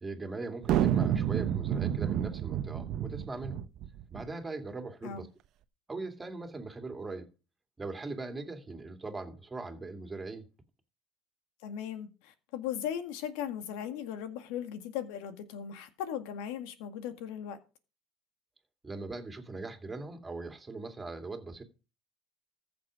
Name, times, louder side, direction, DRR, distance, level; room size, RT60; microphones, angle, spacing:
voice 1, 0.0-3.6 4.1-5.3 5.9-7.3 7.8-10.5 18.8-21.6, right 3 dB, 15° right, 2.6 m, -40 dB
sound 1, 0.6-4.3, right 10 dB, 55° right, 0.9 m, -29 dB
voice 2, 11.6-17.6, left 9 dB, 75° left, 1.8 m, -38 dB
14.5 x 6.9 x 5.0 m
supercardioid pair, 100°, 0 cm